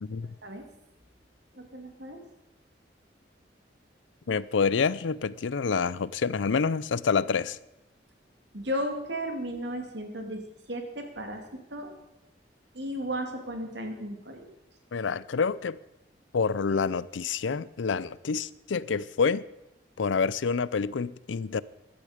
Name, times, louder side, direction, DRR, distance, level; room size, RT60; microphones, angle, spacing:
voice 1, 1.5-2.2 8.5-11.4 11.7-11.9 12.7-14.5, equal, 70° right, 2.4 m, -34 dB
voice 2, 4.3-7.6 14.9-15.8 16.3-19.4 20.0-21.6, left 5 dB, 85° left, 0.5 m, -27 dB
15.0 x 11.5 x 5.1 m
head